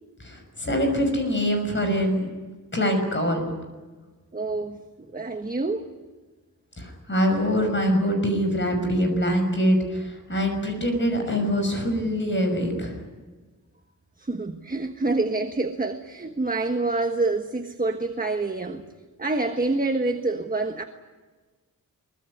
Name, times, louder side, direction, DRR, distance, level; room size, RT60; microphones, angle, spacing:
voice 1, 0.2-2.3 2.7-3.5 6.8-13.0, equal, 30° left, 5 dB, 6.0 m, -24 dB
voice 2, 4.3-5.9 14.2-18.8 19.2-20.8, right 3 dB, 25° right, 5 dB, 1.4 m, -27 dB
23.5 x 23.0 x 9.8 m, 1.3 s
wide cardioid pair, 165°, 36 cm